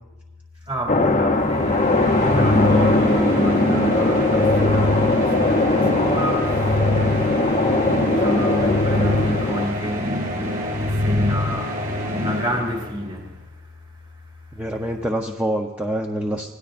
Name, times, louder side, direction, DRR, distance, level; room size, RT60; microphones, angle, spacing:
voice 1, 0.6-14.6, equal, 25° right, 2.4 m, -29 dB
sound 1, 0.9-9.7, left 2 dB, 30° left, 0.8 m, -20 dB
sound 2, 1.4-13.2, left 1 dB, 40° right, 3.9 m, -25 dB
voice 2, 14.5-16.5, right 1 dB, 5° right, 0.7 m, -26 dB
26.0 x 18.0 x 2.6 m
head